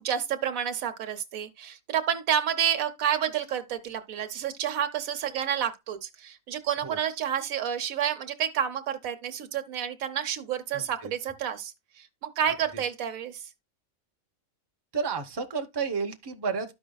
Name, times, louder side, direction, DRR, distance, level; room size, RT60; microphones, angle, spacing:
voice 1, 0.0-13.5, right 9 dB, 90° right, 1.3 m, -30 dB
voice 2, 10.7-11.1 12.5-12.6 14.9-16.7, right 5 dB, 20° right, 0.7 m, -31 dB
13.0 x 5.1 x 2.2 m
omnidirectional pair, 1.4 m